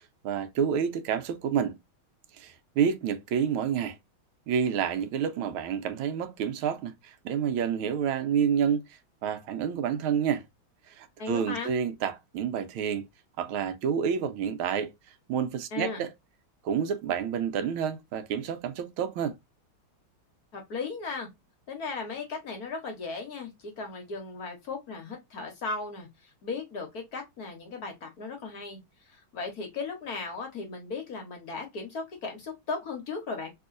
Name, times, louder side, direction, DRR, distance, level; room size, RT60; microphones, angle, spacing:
voice 1, 0.2-1.8 2.4-4.0 4.5-8.9 9.2-10.4 10.9-13.1 13.4-14.9 15.3-16.1 16.6-19.4, right 7 dB, 85° right, 1.5 m, -29 dB
voice 2, 11.2-11.7 15.7-16.0 20.5-21.3 21.7-28.8 29.1-33.5, left 4 dB, 55° left, 1.4 m, -36 dB
3.5 x 3.0 x 2.4 m
omnidirectional pair, 2.3 m